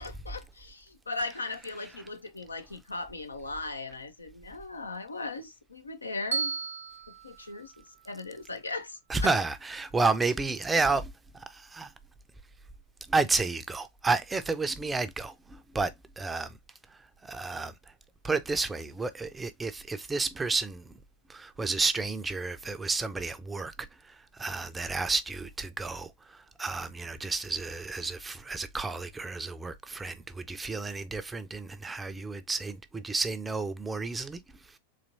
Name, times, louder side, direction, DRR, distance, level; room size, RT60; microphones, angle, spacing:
voice 1, 0.0-6.6 7.2-9.3, left 3 dB, 80° left, 0.6 m, -38 dB
Bell, 6.3-8.5, right 5 dB, 70° right, 0.4 m, -36 dB
voice 2, 9.1-11.9 13.1-16.6 16.9-17.7 18.2-20.9 21.3-34.4 34.7-34.8, right 3 dB, 10° right, 0.5 m, -31 dB
4.1 x 3.0 x 2.6 m
figure-of-eight pair, 90°, 0 cm